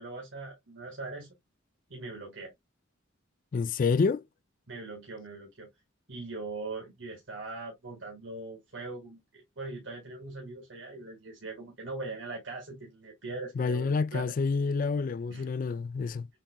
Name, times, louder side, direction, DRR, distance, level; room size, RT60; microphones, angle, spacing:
voice 1, 0.0-1.4 1.9-2.5 4.7-5.7 6.1-14.3 15.3-15.5, right 3 dB, 70° right, 1.9 m, -41 dB
voice 2, 3.5-4.2 13.6-16.3, left 4 dB, 45° left, 0.3 m, -28 dB
7.3 x 2.8 x 2.2 m
head